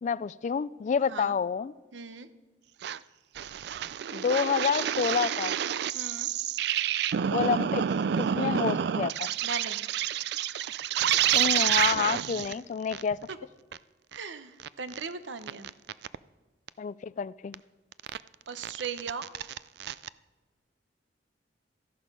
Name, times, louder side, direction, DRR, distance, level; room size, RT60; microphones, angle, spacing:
voice 1, 0.0-1.7 4.1-5.5 7.3-7.8 8.2-9.3 11.3-13.2 16.8-17.6, left 6 dB, 40° left, 19 dB, 0.3 m, -28 dB
voice 2, 1.9-2.3 5.9-6.3 8.4-8.6 9.4-9.8 12.3-12.7 13.3-13.4 14.1-15.7 18.5-19.3, right 5 dB, 90° right, 12 dB, 0.8 m, -38 dB
sound 1, 2.8-3.0 3.4-12.5 12.9-13.0 13.3-13.4 13.7-13.8 14.1-14.2 14.6-15.0 15.5-16.2 16.7-16.8 17.5-17.6 17.9-18.2 18.6-20.1, right 9 dB, 65° right, 0.3 m, -29 dB
13.5 x 11.0 x 5.3 m, 1.3 s
head